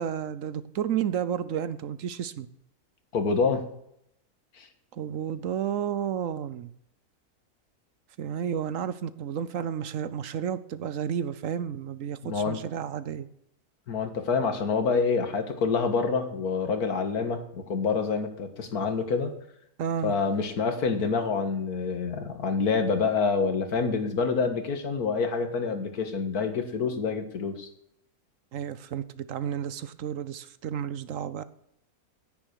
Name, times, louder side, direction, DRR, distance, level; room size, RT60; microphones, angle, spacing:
voice 1, 0.0-2.5 4.9-6.7 8.2-13.3 19.8-20.2 28.5-31.4, right 9 dB, 65° right, 15 dB, 1.0 m, -31 dB
voice 2, 3.1-3.6 4.6-4.7 12.2-12.6 13.9-19.3 20.0-27.7, left 5 dB, 85° left, 8 dB, 2.0 m, -27 dB
9.9 x 9.9 x 6.4 m, 0.73 s
omnidirectional pair, 1.6 m